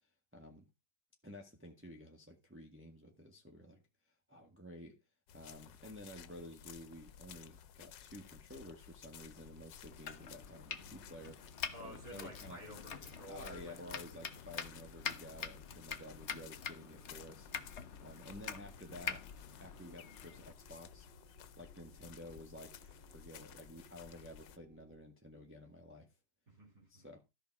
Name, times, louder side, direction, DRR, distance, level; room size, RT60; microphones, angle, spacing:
voice 1, 0.3-0.6 1.2-3.8 4.3-4.9 5.3-12.6 13.3-17.5 18.0-19.2 19.6-21.1 21.6-26.1 26.9-27.2, left 1 dB, 5° right, 1.5 m, -52 dB
sound 1, 5.3-24.6, left 9 dB, 90° left, 1.5 m, -55 dB
sound 2, 9.2-25.0, right 4 dB, 85° right, 2.6 m, -65 dB
Domestic sounds home sounds, 9.9-20.5, left 7 dB, 50° left, 1.1 m, -46 dB
voice 2, 11.7-14.2 26.5-27.1, right 1 dB, 55° right, 4.0 m, -52 dB
13.5 x 5.7 x 4.7 m
omnidirectional pair, 1.9 m